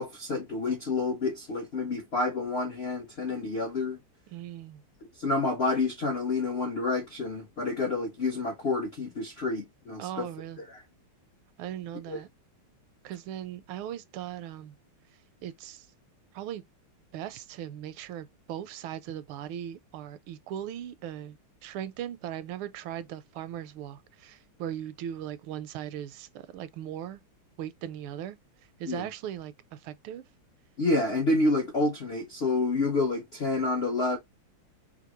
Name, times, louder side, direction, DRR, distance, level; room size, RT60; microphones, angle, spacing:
voice 1, 0.0-4.0 5.2-10.3 10.6-10.8 12.1-12.2 28.9-29.1 30.8-34.2, left 3 dB, 70° left, 0.6 m, -29 dB
voice 2, 4.3-4.8 10.0-10.6 11.6-12.3 13.0-14.7 15.4-15.8 16.3-16.6 17.1-21.3 21.6-24.3 24.6-26.3 26.5-27.2 27.6-28.4 28.8-29.5 29.8-30.2, right 11 dB, 80° right, 1.4 m, -38 dB
5.0 x 2.6 x 2.9 m
omnidirectional pair, 2.3 m